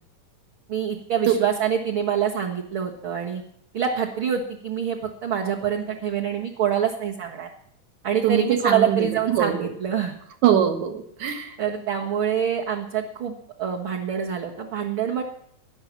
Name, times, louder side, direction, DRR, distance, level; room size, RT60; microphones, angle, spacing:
voice 1, 0.7-3.4 3.7-7.5 8.0-10.1 11.6-13.3 13.6-15.2, right 8 dB, 50° right, -1 dB, 1.9 m, -26 dB
voice 2, 8.2-9.7 10.4-11.6, right 9 dB, 70° right, 8 dB, 2.8 m, -22 dB
17.0 x 11.0 x 7.3 m, 0.69 s
omnidirectional pair, 3.5 m